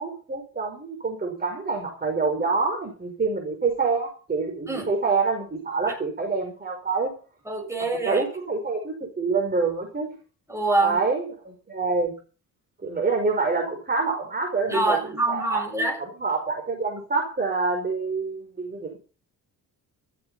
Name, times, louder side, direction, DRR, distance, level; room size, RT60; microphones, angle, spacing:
voice 1, 0.0-7.1 8.0-10.1 10.8-12.1 12.8-15.0 15.3-15.6 16.0-19.0, right 4 dB, 25° right, 5.5 m, -26 dB
voice 2, 7.5-8.2 10.5-11.0 14.7-16.0, right 2 dB, 10° right, 7.0 m, -25 dB
15.0 x 14.5 x 5.7 m
cardioid pair, 155°, 37 cm